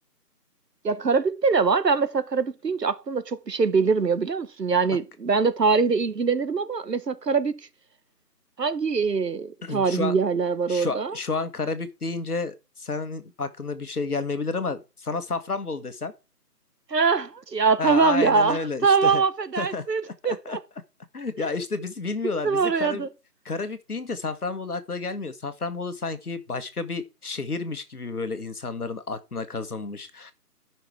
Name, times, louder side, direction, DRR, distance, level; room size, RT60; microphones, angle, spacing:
voice 1, 0.8-7.6 8.6-11.2 16.9-20.6 22.4-23.1, right 5 dB, 85° right, 1.2 m, -23 dB
voice 2, 9.6-10.1 10.7-16.1 17.8-19.2 19.6-19.9 20.2-20.6 21.1-23.1 23.5-30.3, left 3 dB, 65° left, 1.6 m, -31 dB
11.5 x 6.0 x 4.7 m
figure-of-eight pair, 170°, 48 cm